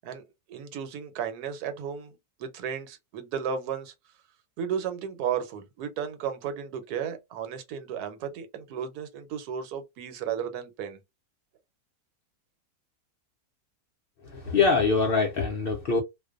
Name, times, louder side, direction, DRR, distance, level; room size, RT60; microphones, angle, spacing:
voice 1, 0.0-3.9 4.6-11.0, right 8 dB, 85° right, 1.2 m, -34 dB
voice 2, 14.2-16.0, left 4 dB, 70° left, 0.5 m, -24 dB
2.5 x 2.2 x 2.4 m
omnidirectional pair, 1.6 m